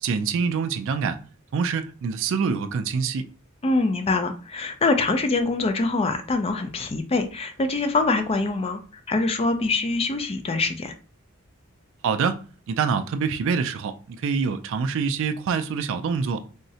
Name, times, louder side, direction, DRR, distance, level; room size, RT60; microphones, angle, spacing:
voice 1, 0.0-1.2 1.5-3.2 12.0-12.4 12.7-16.4, right 5 dB, 60° right, 0.3 m, -25 dB
voice 2, 3.6-8.8 9.1-10.9, left 3 dB, 25° left, 0.3 m, -24 dB
3.6 x 2.1 x 2.7 m
head